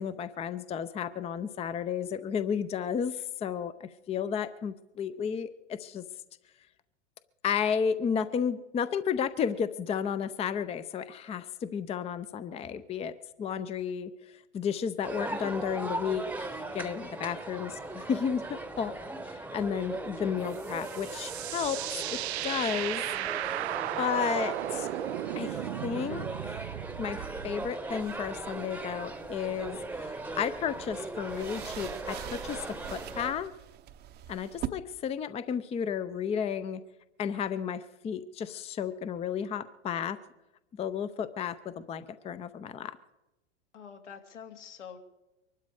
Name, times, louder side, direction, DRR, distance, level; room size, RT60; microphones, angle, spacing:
voice 1, 0.0-6.0 7.4-13.1 13.4-14.1 14.5-18.9 19.3-21.8 22.1-22.2 22.4-23.0 24.0-24.9 25.4-26.6 27.0-33.5 34.3-36.8 37.2-40.2 40.7-43.0, left 7 dB, 15° left, 13 dB, 0.6 m, -33 dB
sound 1, 15.0-33.3, right 2 dB, 5° right, 1.0 m, -39 dB
sound 2, 20.5-27.7, right 16 dB, 65° right, 0.5 m, -35 dB
sound 3, 27.9-34.7, right 12 dB, 30° right, 0.8 m, -44 dB
voice 2, 43.7-45.0, left 7 dB, 75° left, 3 dB, 2.5 m, -46 dB
23.5 x 12.0 x 4.9 m, 1.0 s
hypercardioid pair, 105°, 36 cm